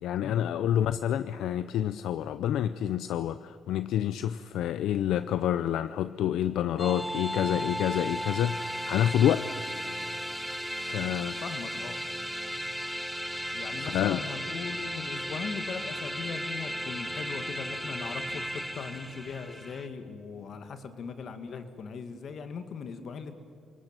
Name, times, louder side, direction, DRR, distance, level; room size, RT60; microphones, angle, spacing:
voice 1, 0.0-9.7 10.8-11.4 13.7-14.2, left 10 dB, 80° left, 13 dB, 0.6 m, -28 dB
sound 1, 6.8-19.9, equal, ahead, 2.0 m, -35 dB
voice 2, 11.4-12.0 13.5-23.3, left 5 dB, 60° left, 8 dB, 2.2 m, -39 dB
28.0 x 18.5 x 9.0 m, 2.4 s
cardioid pair, 90°, 0 cm